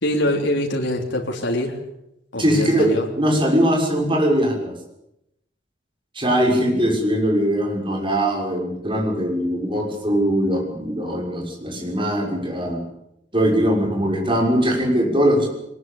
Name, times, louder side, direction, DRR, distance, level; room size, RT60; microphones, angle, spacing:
voice 1, 0.0-1.8 2.3-3.1, left 1 dB, 75° left, 1 dB, 3.6 m, -24 dB
voice 2, 2.4-4.7 6.1-12.8 13.3-15.5, equal, 25° right, 1 dB, 6.2 m, -21 dB
22.0 x 20.5 x 8.6 m, 0.82 s
head